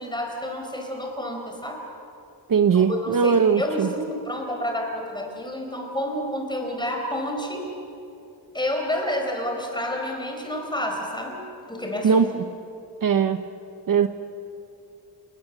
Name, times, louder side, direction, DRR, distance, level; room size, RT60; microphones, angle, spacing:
voice 1, 0.0-1.8 2.7-7.7 8.5-12.2, left 1 dB, 10° left, 2 dB, 4.3 m, -29 dB
voice 2, 2.5-3.9 12.0-12.3 13.0-13.4 13.9-14.1, right 6 dB, 55° right, 9 dB, 0.8 m, -19 dB
29.5 x 19.0 x 7.5 m, 2.6 s
wide cardioid pair, 135°, 41 cm